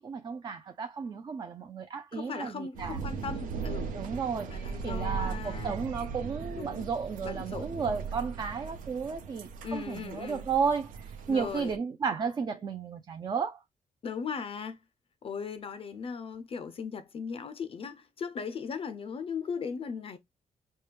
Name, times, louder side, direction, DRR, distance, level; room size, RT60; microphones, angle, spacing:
voice 1, 0.0-3.0 3.9-13.6, right 6 dB, 30° right, 0.4 m, -33 dB
voice 2, 2.1-4.2 4.5-5.8 6.6-6.9 7.2-7.7 9.6-10.5 11.3-11.7 14.0-14.8 15.2-20.2, left 6 dB, 45° left, 0.4 m, -38 dB
sound 1, 2.7-11.7, right 5 dB, 90° right, 0.6 m, -38 dB
4.5 x 2.2 x 3.2 m
cardioid pair, 120°, 13 cm